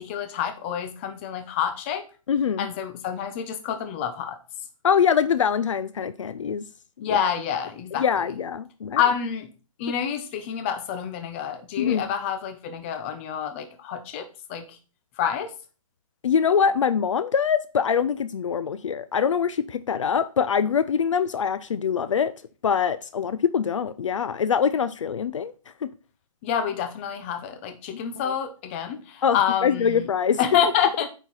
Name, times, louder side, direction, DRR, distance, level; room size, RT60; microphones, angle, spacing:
voice 1, 0.0-2.0 2.6-4.4 7.0-8.0 8.9-9.5 9.8-14.8 15.2-15.5 26.4-30.1 30.4-31.1, left 8 dB, 20° left, 0.8 m, -27 dB
voice 2, 2.3-2.7 4.8-6.7 7.1-7.2 7.9-9.0 11.8-12.1 16.2-22.3 22.6-25.5 25.8-25.9 28.3-28.4 29.2-30.4, left 7 dB, 60° left, 0.5 m, -24 dB
8.9 x 4.6 x 4.1 m
hypercardioid pair, 160°, 18 cm